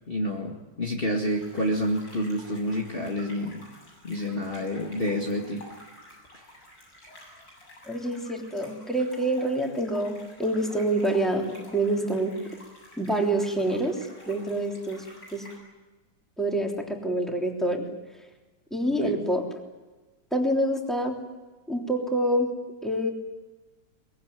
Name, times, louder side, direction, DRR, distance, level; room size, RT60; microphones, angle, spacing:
voice 1, 0.1-3.6 4.0-5.6 19.0-19.2, equal, 30° left, -1 dB, 2.3 m, -28 dB
sound 1, 1.2-15.6, left 1 dB, 85° left, 8.6 m, -50 dB
voice 2, 7.9-12.5 13.0-15.0 15.3-15.5 16.4-17.8 18.7-19.5 20.3-21.2 21.7-22.5 22.8-23.1, right 1 dB, ahead, 1 dB, 3.3 m, -27 dB
23.0 x 22.0 x 9.4 m, 1.2 s
omnidirectional pair, 1.9 m